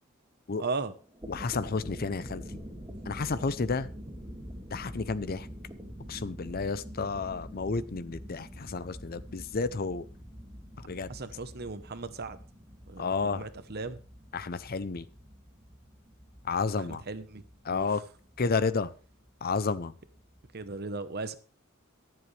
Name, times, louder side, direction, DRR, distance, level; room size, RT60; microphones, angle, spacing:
voice 1, 0.6-0.9 11.1-12.4 12.9-14.0 16.8-17.4 17.7-17.9 20.5-21.4, right 3 dB, 50° right, 1.0 m, -37 dB
sound 1, 1.0-20.7, equal, 15° right, 2.1 m, -46 dB
voice 2, 1.3-2.6 3.1-3.9 4.7-5.5 6.1-10.0 10.9-11.1 13.0-13.4 14.3-15.0 16.4-17.0 17.6-18.0 18.4-18.9 19.4-19.9, left 4 dB, 45° left, 0.6 m, -31 dB
23.5 x 7.8 x 3.3 m
head